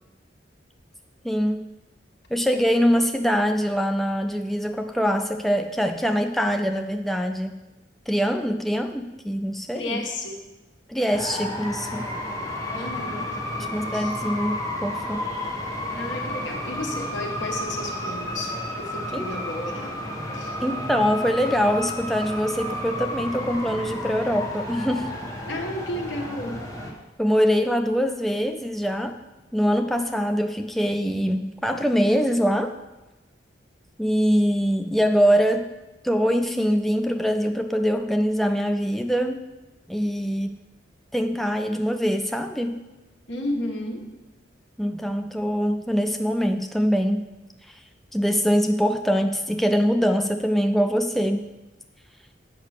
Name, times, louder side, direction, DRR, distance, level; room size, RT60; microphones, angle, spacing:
voice 1, 1.2-1.7 2.3-7.6 8.1-10.0 10.9-12.1 13.7-15.2 19.1-19.3 20.6-25.1 27.2-29.2 29.5-32.7 34.0-35.7 36.0-39.5 39.9-40.5 41.1-42.8 44.8-47.2 47.6-47.8 48.1-51.4, equal, ahead, 6 dB, 0.3 m, -23 dB
voice 2, 9.7-10.4 12.7-13.4 13.9-14.2 15.9-20.0 20.3-20.6 25.5-26.7 43.3-44.1, left 1 dB, 75° left, 1 dB, 1.6 m, -32 dB
sound 1, 11.1-26.9, left 1 dB, 15° left, 1.5 m, -32 dB
8.3 x 5.7 x 6.6 m, 1.1 s
head